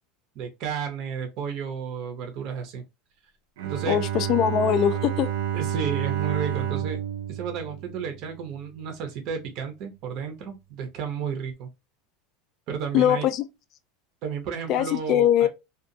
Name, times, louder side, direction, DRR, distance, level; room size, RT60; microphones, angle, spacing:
voice 1, 0.4-2.8 3.6-4.0 5.5-7.0 7.3-11.7 12.7-13.3 14.2-15.5, right 6 dB, 40° right, 0.6 m, -32 dB
Bowed string instrument, 3.6-8.5, right 10 dB, 85° right, 0.5 m, -30 dB
voice 2, 3.9-5.3 12.9-13.4 14.7-15.5, left 10 dB, 35° left, 0.3 m, -21 dB
2.6 x 2.3 x 2.6 m
supercardioid pair, 170°, 0 cm